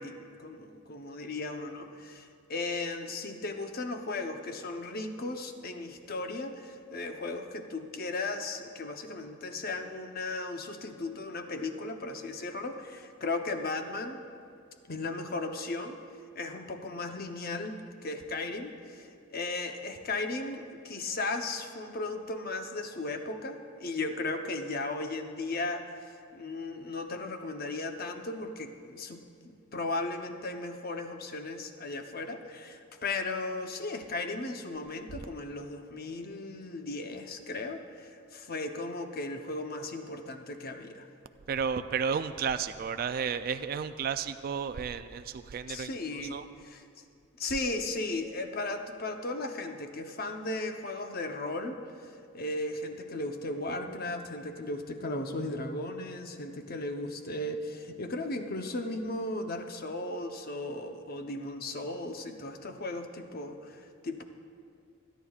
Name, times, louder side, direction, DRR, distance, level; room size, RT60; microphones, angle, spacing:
voice 1, 0.0-14.2 14.9-16.0 16.4-25.8 26.3-29.2 29.4-41.1 45.7-46.8 47.4-51.8 52.3-64.2, left 2 dB, 45° left, 5 dB, 0.8 m, -36 dB
voice 2, 41.5-45.9 46.2-46.4, right 6 dB, 45° right, 10 dB, 0.3 m, -32 dB
27.0 x 10.0 x 2.4 m, 2.3 s
head